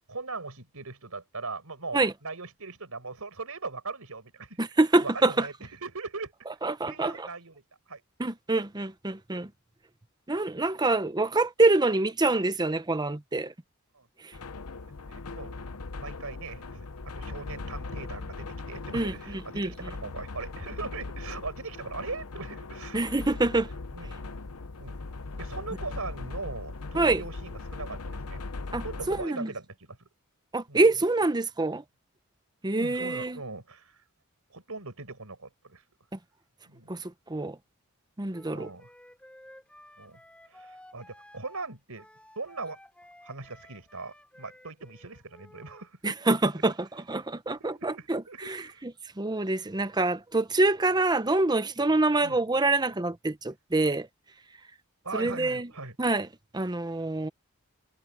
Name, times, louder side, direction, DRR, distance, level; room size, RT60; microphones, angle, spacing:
voice 1, 0.1-4.6 5.0-6.3 6.9-7.6 7.9-8.0 13.9-14.1 14.7-15.6 16.0-16.9 17.2-23.0 23.9-24.2 24.8-25.0 25.4-28.4 28.7-30.0 30.7-30.9 32.7-34.0 34.5-35.8 36.7-36.9 38.5-38.9 40.0-40.2 40.5-42.1 42.3-42.8 43.2-46.2 47.6-48.8 52.2-52.4 55.0-56.0, right 3 dB, 75° right, 5.0 m, -40 dB
voice 2, 4.6-5.5 6.6-7.3 8.2-9.5 10.3-13.5 18.9-19.1 19.6-19.7 22.9-23.7 26.9-27.2 28.7-29.5 30.5-31.8 32.6-33.4 36.9-37.0 37.3-37.6 38.2-38.7 46.0-46.7 47.1-48.9 49.2-54.1 55.1-55.7 56.0-56.3 56.5-57.3, right 2 dB, 20° right, 0.9 m, -26 dB
sound 1, 14.3-29.3, left 3 dB, 80° left, 0.9 m, -39 dB
Wind instrument woodwind instrument, 38.3-45.9, left 1 dB, 5° left, 7.3 m, -54 dB
head